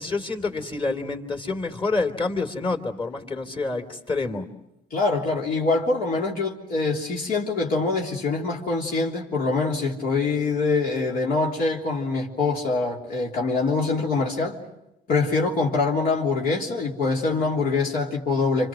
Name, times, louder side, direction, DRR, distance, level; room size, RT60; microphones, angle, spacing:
voice 1, 0.0-4.4, left 3 dB, 30° left, 7 dB, 3.3 m, -28 dB
voice 2, 4.9-14.6 15.1-18.7, left 3 dB, 60° left, -2 dB, 3.5 m, -24 dB
29.0 x 26.5 x 6.3 m, 0.89 s
cardioid pair, 110°, 17 cm